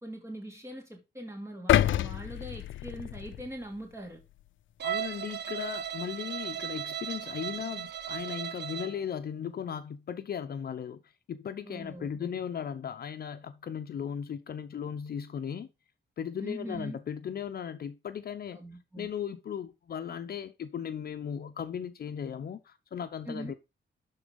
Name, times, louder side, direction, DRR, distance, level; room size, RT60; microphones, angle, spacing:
voice 1, 0.0-4.2 11.6-12.1 16.4-17.0 18.5-19.1 23.3-23.5, right 1 dB, 15° right, 2.9 m, -41 dB
sound 1, 1.7-3.9 4.3-4.5, left 13 dB, 85° left, 0.4 m, -28 dB
voice 2, 4.8-11.0 11.3-15.7 16.2-18.6 19.0-23.5, left 8 dB, 55° left, 0.7 m, -37 dB
Bowed string instrument, 4.8-9.0, right 10 dB, 60° right, 0.9 m, -36 dB
11.5 x 4.0 x 5.2 m
wide cardioid pair, 150°, 19 cm